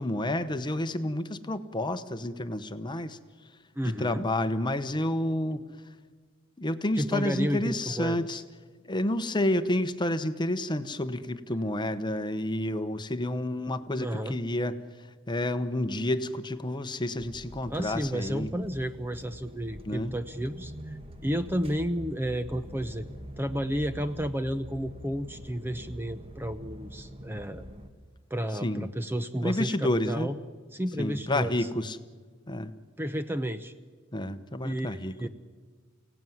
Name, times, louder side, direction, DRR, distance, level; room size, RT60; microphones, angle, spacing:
voice 1, 0.0-3.2 3.8-5.6 6.6-8.4 8.9-14.8 15.3-18.5 19.8-20.1 28.6-28.9 29.4-30.3 31.0-32.0 32.5-32.7 34.1-35.3, left 1 dB, 20° left, 10 dB, 0.9 m, -30 dB
voice 2, 3.7-4.3 7.0-8.4 14.0-14.4 17.7-23.1 23.4-27.7 28.3-30.4 30.7-31.5 33.0-33.7 34.6-35.3, equal, 10° right, 9 dB, 0.7 m, -32 dB
sound 1, 17.2-27.9, equal, 25° right, 1.4 m, -44 dB
29.5 x 17.5 x 9.4 m, 1.5 s
head